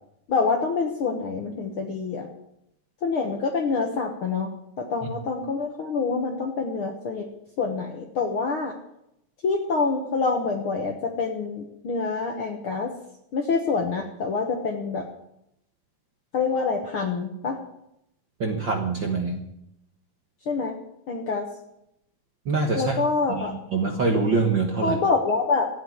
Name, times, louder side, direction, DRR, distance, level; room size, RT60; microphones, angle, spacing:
voice 1, 0.3-2.3 3.0-4.5 4.8-7.3 7.6-8.8 9.4-12.9 13.3-15.0 16.3-17.6 20.4-20.7 21.1-21.5 22.8-23.6 24.8-25.7, left 4 dB, 55° left, 4 dB, 1.6 m, -26 dB
voice 2, 18.4-19.4 22.4-23.0 23.3-25.0, right 4 dB, 50° right, 3 dB, 1.4 m, -24 dB
13.5 x 9.1 x 9.7 m, 0.80 s
omnidirectional pair, 3.8 m